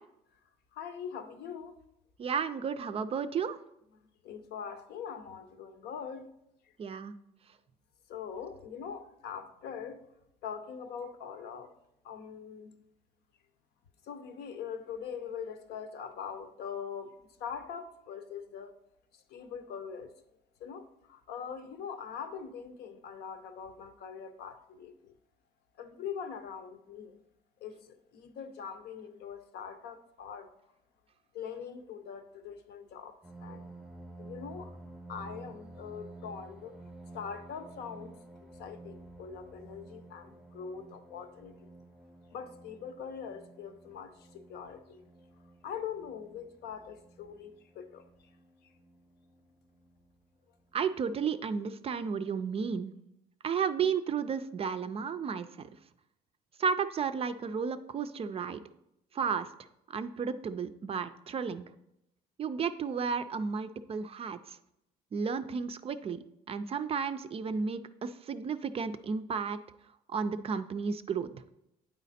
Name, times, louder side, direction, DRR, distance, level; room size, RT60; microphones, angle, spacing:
voice 1, 0.7-1.8 4.2-6.3 8.1-10.0 10.4-11.7 12.0-12.8 14.0-18.8 19.1-20.1 20.6-25.1 25.8-27.2 27.6-30.5 31.3-33.7 34.2-34.8 35.1-36.8 37.1-38.2 38.6-41.7 42.3-45.1 45.6-48.3 48.6-48.7, left 7 dB, 75° left, 0.8 m, -42 dB
voice 2, 2.2-3.6 6.8-7.2 50.7-52.9 53.4-55.7 56.6-58.6 59.1-59.5 59.9-61.7 62.4-64.6 65.1-69.6 70.1-71.4, right 6 dB, 35° right, 0.4 m, -33 dB
sound 1, 33.2-50.2 50.9-51.0 51.4-51.7, right 2 dB, 5° right, 0.8 m, -52 dB
9.1 x 4.1 x 4.2 m
cardioid pair, 110°, 17 cm